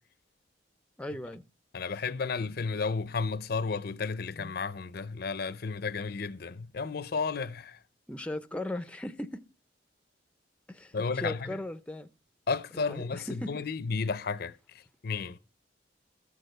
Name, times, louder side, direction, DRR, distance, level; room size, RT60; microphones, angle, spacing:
voice 1, 1.0-1.4 8.1-9.4 10.7-12.1 12.7-13.6, left 1 dB, 5° left, 0.5 m, -38 dB
voice 2, 1.7-7.8 10.9-11.5 12.5-14.6 15.0-15.4, left 4 dB, 55° left, 0.6 m, -32 dB
14.0 x 6.5 x 6.6 m
head